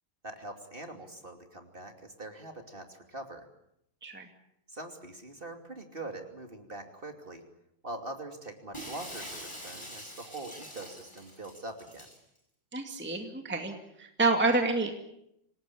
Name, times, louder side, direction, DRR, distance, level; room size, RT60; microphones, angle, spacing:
voice 1, 0.2-3.5 4.7-7.4 7.8-12.1, right 2 dB, 25° right, 4 dB, 2.9 m, -43 dB
Shatter, 8.7-12.2, equal, 15° left, 6.7 m, -44 dB
voice 2, 12.7-13.7 14.0-14.9, right 3 dB, 5° right, 4 dB, 2.2 m, -28 dB
27.0 x 19.5 x 8.6 m, 0.79 s
omnidirectional pair, 2.1 m